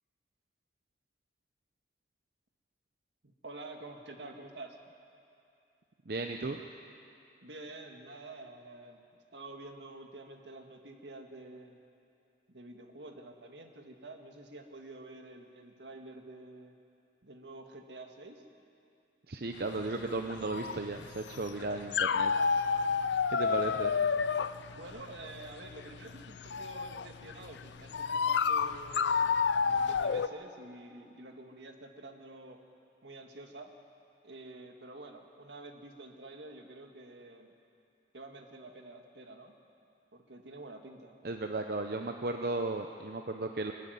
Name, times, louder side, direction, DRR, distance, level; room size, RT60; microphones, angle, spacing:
voice 1, 3.2-4.8 7.4-9.0 9.3-11.8 12.5-16.7 17.2-18.4 23.6-23.8 24.7-29.3 29.6-32.6 33.0-33.7 34.2-37.5 38.1-39.5 40.1-41.1, right 2 dB, 80° right, 4 dB, 1.9 m, -48 dB
voice 2, 6.1-6.6 19.3-22.3 23.3-23.9 41.2-43.7, right 2 dB, 55° right, 4 dB, 0.7 m, -35 dB
sound 1, 19.5-30.3, left 6 dB, 80° left, 0.5 m, -30 dB
23.0 x 12.5 x 9.4 m, 2.6 s
head